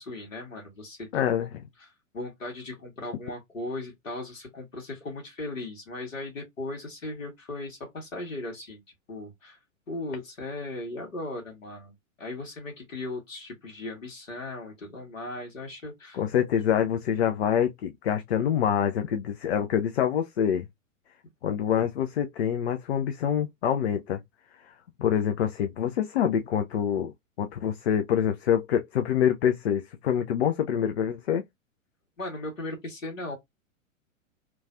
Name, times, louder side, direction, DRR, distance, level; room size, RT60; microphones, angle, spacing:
voice 1, 0.0-1.5 1.8-8.8 9.1-9.6 9.9-16.2 32.2-33.4, left 2 dB, 70° left, 1.5 m, -37 dB
voice 2, 1.1-1.6 16.1-20.7 21.4-24.2 24.7-24.8 25.0-27.1 27.4-31.4, left 9 dB, 50° left, 0.5 m, -26 dB
3.0 x 2.3 x 2.5 m
figure-of-eight pair, 105°, 40 cm